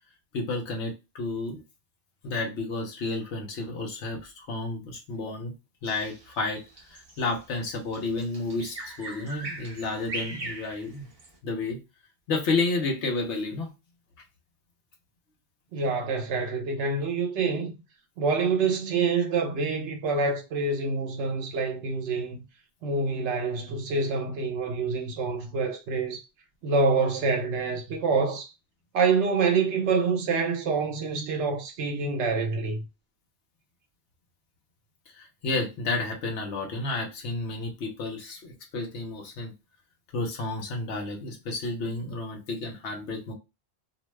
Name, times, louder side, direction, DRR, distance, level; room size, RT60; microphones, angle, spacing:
voice 1, 0.3-1.6 2.2-5.5 5.8-6.6 6.9-11.1 11.4-11.8 12.3-13.7 35.1-39.5 40.1-43.3, left 3 dB, 90° left, 1.0 m, -31 dB
Bird vocalization bird call bird song, 5.8-11.4, right 2 dB, 35° right, 0.7 m, -40 dB
voice 2, 15.7-17.7 18.2-22.4 22.8-26.2 26.6-28.5 28.9-32.8, right 4 dB, 85° right, 1.0 m, -26 dB
2.7 x 2.1 x 3.1 m
omnidirectional pair, 1.1 m